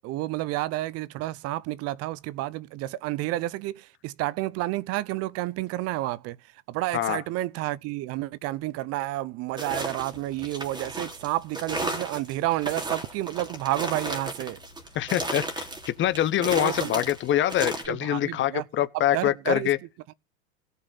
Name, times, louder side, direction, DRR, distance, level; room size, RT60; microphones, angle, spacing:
voice 1, 0.0-14.6 16.4-17.0 17.9-18.7 18.9-19.7 20.1-20.2, right 17 dB, 35° right, 0.7 m, -30 dB
sound 1, 9.5-17.9, right 1 dB, 10° right, 3.1 m, -34 dB
voice 2, 14.9-15.6 16.0-19.8, left 12 dB, 30° left, 1.1 m, -25 dB
16.5 x 5.6 x 5.9 m
hypercardioid pair, 105°, 40 cm